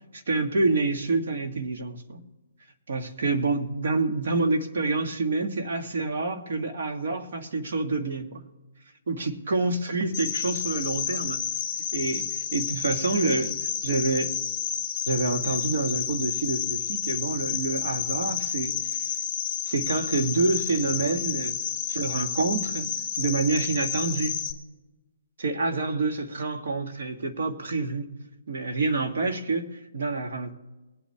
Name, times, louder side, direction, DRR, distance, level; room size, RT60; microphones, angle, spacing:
voice 1, 0.1-2.2 2.9-8.4 9.1-11.4 11.9-13.6 13.8-14.3 15.1-19.0 19.7-21.6 21.9-22.9 23.2-24.4 25.4-28.1 28.5-30.5, right 3 dB, 65° right, 4 dB, 1.9 m, -27 dB
Cricket, 10.1-24.5, left 9 dB, 15° left, 1.4 m, -30 dB
21.5 x 8.6 x 3.5 m, 1.1 s
hypercardioid pair, 160°, 0 cm